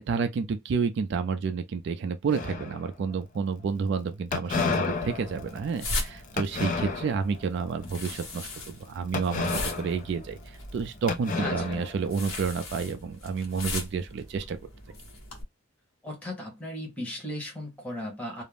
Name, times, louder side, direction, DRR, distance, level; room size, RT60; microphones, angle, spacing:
voice 1, 0.0-14.6, right 5 dB, 60° right, 0.3 m, -30 dB
sound 1, 2.3-3.1 4.3-7.4 7.8-8.1 9.1-10.8 11.1-12.4, left 4 dB, 40° left, 0.4 m, -32 dB
sound 2, 4.5-15.4, left 2 dB, 80° left, 1.0 m, -39 dB
voice 2, 11.4-11.8 16.0-18.4, left 1 dB, 5° left, 0.9 m, -36 dB
2.4 x 2.0 x 3.3 m
head